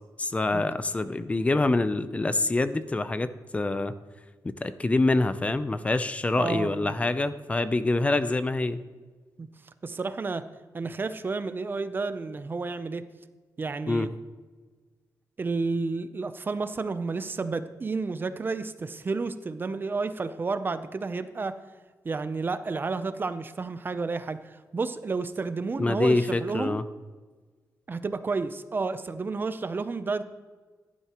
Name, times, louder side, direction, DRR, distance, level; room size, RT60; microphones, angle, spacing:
voice 1, 0.2-3.9 4.4-8.8 13.9-14.1 25.8-26.8, left 2 dB, 20° left, 13 dB, 0.5 m, -26 dB
voice 2, 6.4-7.0 9.4-9.5 9.8-10.4 10.7-13.0 13.6-14.1 15.4-21.6 22.0-26.8 27.9-30.2, right 4 dB, 30° right, 11 dB, 0.6 m, -31 dB
15.0 x 11.0 x 3.0 m, 1.4 s
wide cardioid pair, 135°, 7 cm